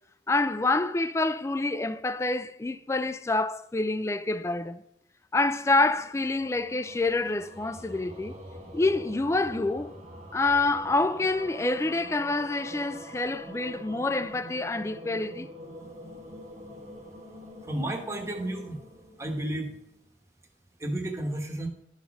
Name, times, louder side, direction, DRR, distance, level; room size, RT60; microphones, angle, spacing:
voice 1, 0.3-4.8 5.3-8.4 8.7-9.9 10.3-15.5, left 2 dB, 15° left, 0.3 m, -27 dB
sound 1, 5.5-19.9, equal, 35° right, 1.2 m, -45 dB
voice 2, 17.6-18.8 19.2-19.8 20.8-21.7, right 1 dB, 15° right, 1.1 m, -32 dB
11.5 x 4.1 x 5.9 m
head